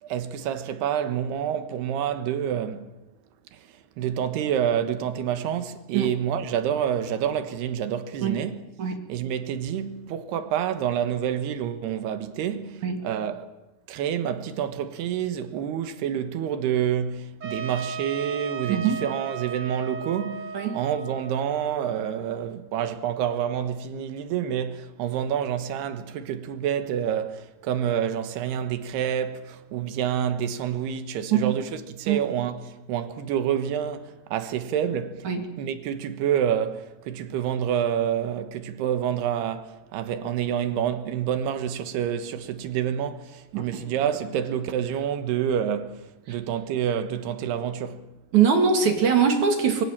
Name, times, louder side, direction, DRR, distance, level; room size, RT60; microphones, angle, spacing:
voice 1, 0.0-2.9 3.5-8.6 9.1-13.5 13.9-31.7 32.0-35.3 35.6-48.0, right 9 dB, 85° right, 3.4 m, -28 dB
Trumpet, 17.4-22.2, right 5 dB, 35° right, 2.0 m, -36 dB
voice 2, 48.3-49.8, right 7 dB, 50° right, 3.4 m, -22 dB
26.0 x 23.0 x 7.4 m
omnidirectional pair, 4.5 m